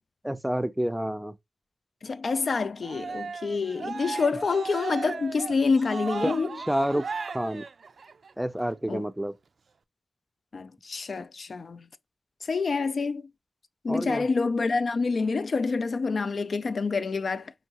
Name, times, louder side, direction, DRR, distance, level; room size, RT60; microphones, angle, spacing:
voice 1, 0.2-1.3 6.2-7.1 7.3-7.6 8.4-9.3 13.9-14.3, equal, 5° right, 0.4 m, -29 dB
voice 2, 2.0-6.5 8.9-9.0 10.5-11.8 12.5-13.3 13.8-17.5, left 4 dB, 70° left, 0.3 m, -27 dB
Cheering, 2.8-8.3, right 5 dB, 80° right, 0.3 m, -36 dB
5.6 x 2.7 x 2.8 m
wide cardioid pair, 105°, 0 cm